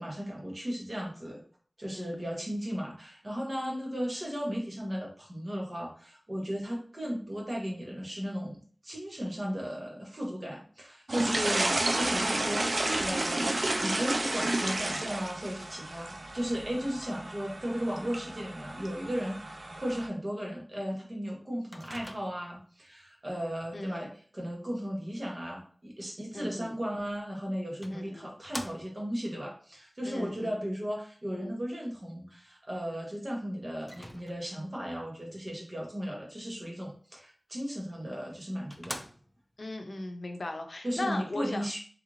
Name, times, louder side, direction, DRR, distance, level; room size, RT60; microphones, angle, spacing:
voice 1, 0.0-1.4 1.8-13.6 13.8-39.0 40.8-41.8, equal, 45° right, -2 dB, 1.2 m, -36 dB
voice 2, 1.9-2.4 11.5-11.8 23.7-24.1 26.3-26.8 27.9-28.3 30.0-30.6 39.6-41.8, left 2 dB, 85° left, 5 dB, 0.5 m, -38 dB
sound 1, 11.1-20.1, right 2 dB, 65° right, 0.4 m, -31 dB
Microwave oven, 21.7-22.6 27.0-27.1 27.8-29.2 33.8-34.7 37.8-37.9 38.3-38.4 38.7-39.6, equal, 15° left, 0.4 m, -44 dB
3.3 x 2.5 x 3.1 m, 0.43 s
wide cardioid pair, 60°, 0 cm